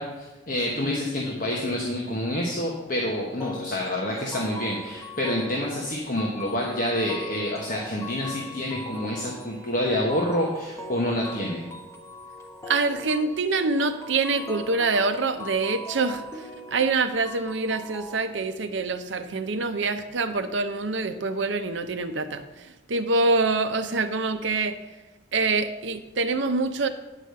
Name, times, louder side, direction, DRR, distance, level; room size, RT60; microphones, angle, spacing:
voice 1, 0.0-11.6, left 1 dB, 45° left, -2 dB, 1.1 m, -28 dB
sound 1, 3.4-18.2, left 1 dB, 15° left, 0.8 m, -40 dB
voice 2, 12.7-16.4 16.7-24.8 25.3-26.9, right 3 dB, 70° right, 9 dB, 0.7 m, -25 dB
9.8 x 4.9 x 6.7 m, 1.1 s
head